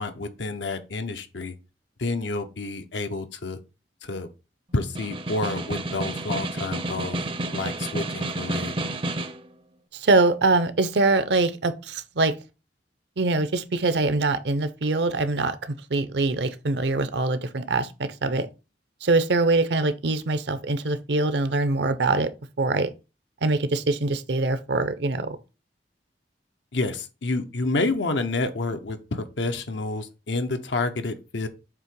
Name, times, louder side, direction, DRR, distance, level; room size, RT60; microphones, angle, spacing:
voice 1, 0.0-1.5 2.0-3.6 4.0-4.3 4.7-7.2 7.5-8.7 26.7-31.5, left 2 dB, 90° left, 0.9 m, -29 dB
Snare drum, 4.8-9.5, right 2 dB, 30° right, 0.5 m, -30 dB
voice 2, 9.9-12.3 13.2-18.5 19.0-22.3 22.6-22.9 23.4-25.4, right 3 dB, 70° right, 0.7 m, -23 dB
7.4 x 2.9 x 4.6 m
head